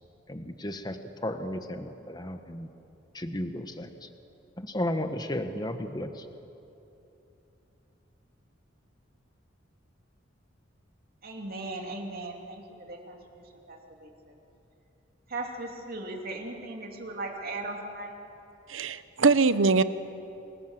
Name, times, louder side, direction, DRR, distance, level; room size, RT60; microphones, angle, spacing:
voice 1, 0.3-2.7 3.1-4.1 4.6-6.3, left 1 dB, 20° left, 7 dB, 1.1 m, -34 dB
voice 2, 11.2-14.1 15.3-18.1, right 2 dB, 50° right, 1 dB, 3.0 m, -38 dB
voice 3, 18.7-19.8, right 4 dB, 80° right, 13 dB, 0.9 m, -22 dB
27.0 x 20.0 x 7.6 m, 2.9 s
head